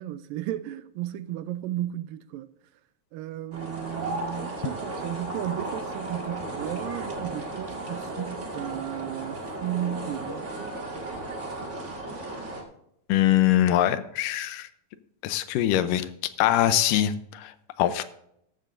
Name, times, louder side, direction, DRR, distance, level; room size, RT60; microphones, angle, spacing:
voice 1, 0.0-2.5 3.1-10.5, right 13 dB, 80° right, 2.2 m, -34 dB
sound 1, 3.5-12.6, right 2 dB, 30° right, 1.4 m, -35 dB
voice 2, 13.1-14.7 15.2-16.1 16.4-18.0, left 12 dB, 80° left, 2.2 m, -23 dB
14.0 x 12.0 x 2.6 m
omnidirectional pair, 4.1 m